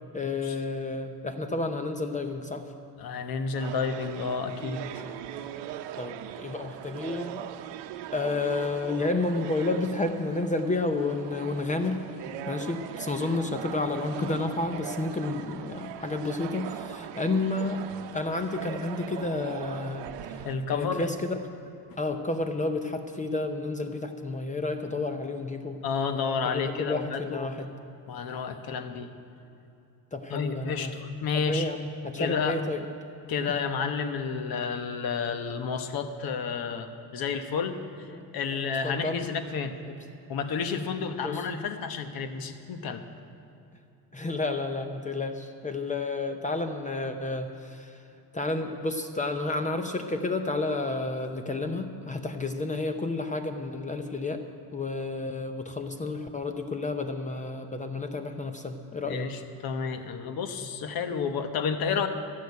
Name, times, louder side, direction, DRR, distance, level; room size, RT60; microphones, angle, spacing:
voice 1, 0.1-2.6 5.9-7.4 8.1-12.0 12.5-17.8 18.1-20.4 20.7-21.4 22.0-25.8 26.4-27.7 30.1-30.9 31.3-32.8 38.1-38.2 38.5-39.3 41.2-41.4 44.1-48.0 48.3-54.4 54.7-59.3, left 3 dB, 20° left, 6 dB, 0.6 m, -31 dB
voice 2, 3.0-5.0 20.4-21.0 25.8-27.5 28.1-29.1 30.3-31.7 32.2-32.6 33.3-38.1 38.3-39.7 40.3-43.0 59.1-62.1, left 5 dB, 60° left, 8 dB, 1.1 m, -31 dB
sound 1, 3.5-20.6, right 10 dB, 90° right, 0.8 m, -40 dB
14.0 x 6.4 x 9.4 m, 2.8 s
cardioid pair, 125°, 41 cm